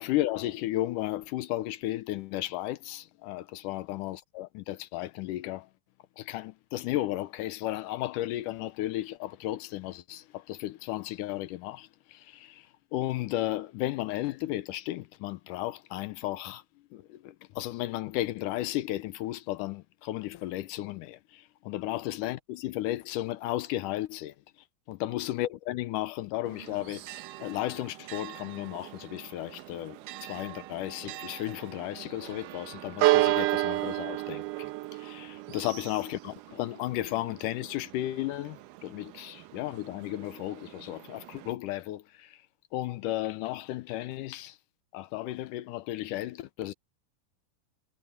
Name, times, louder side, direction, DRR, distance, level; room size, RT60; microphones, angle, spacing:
voice 1, 0.0-5.7 6.2-12.7 12.9-16.6 16.9-24.3 24.9-34.7 35.0-42.4 42.7-44.6 44.9-46.7, left 15 dB, 80° left, 2.2 m, -34 dB
Church bell, 26.5-41.5, right 17 dB, 85° right, 2.3 m, -34 dB
omnidirectional pair, 3.8 m